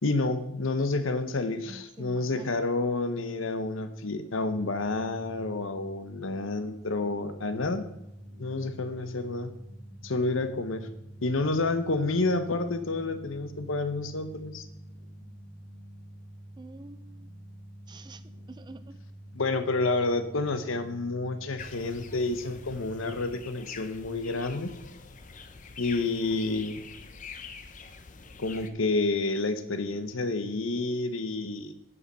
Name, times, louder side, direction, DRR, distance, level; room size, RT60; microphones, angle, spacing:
voice 1, 0.0-7.9 8.4-9.5 10.0-10.9 11.2-14.7 19.3-24.7 25.8-26.8 28.4-31.7, left 3 dB, 75° left, 10 dB, 0.9 m, -29 dB
voice 2, 1.6-2.5 16.6-17.3 17.9-18.2 18.5-19.0, right 2 dB, 20° right, 12 dB, 0.3 m, -47 dB
sound 1, 4.4-23.3, equal, 75° right, 1.9 m, -47 dB
sound 2, 21.6-28.7, left 5 dB, 40° left, 0.7 m, -45 dB
9.7 x 5.3 x 5.4 m, 0.85 s
head